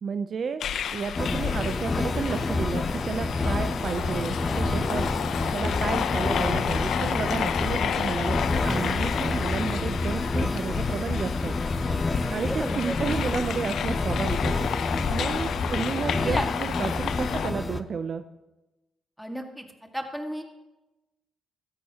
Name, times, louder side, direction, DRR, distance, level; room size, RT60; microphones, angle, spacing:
voice 1, 0.0-0.6 0.9-5.1 5.5-11.6 12.3-14.7 15.1-18.2, right 6 dB, 55° right, 10 dB, 0.6 m, -32 dB
sound 1, 0.6-17.5, left 8 dB, 75° left, 0.6 m, -31 dB
sound 2, 1.2-17.8, left 3 dB, 25° left, 0.8 m, -28 dB
voice 2, 12.3-13.0 15.4-15.5 15.7-16.4 19.2-19.7 19.9-20.4, equal, ahead, 3 dB, 1.9 m, -34 dB
17.0 x 13.5 x 2.9 m, 1.0 s
cardioid pair, 75°, 0 cm